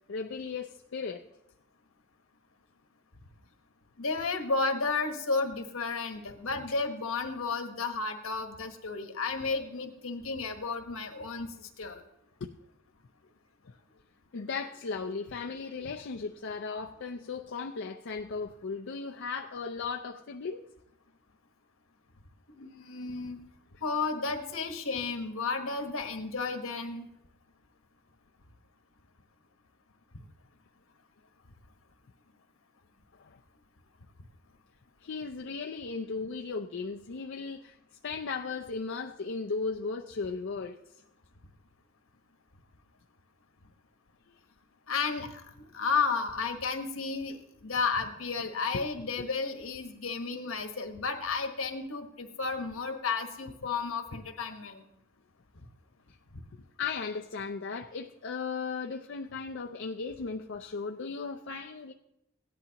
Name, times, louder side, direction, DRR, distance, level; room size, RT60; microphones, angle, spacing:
voice 1, 0.1-1.2 12.4-12.5 14.3-20.6 33.3-33.4 35.0-37.7 38.0-40.8 56.8-61.9, left 4 dB, 60° left, 2 dB, 0.5 m, -36 dB
voice 2, 4.0-12.0 22.6-23.4 23.8-27.1 44.9-54.8, left 4 dB, 80° left, 5 dB, 1.3 m, -32 dB
17.0 x 10.5 x 2.9 m, 0.83 s
head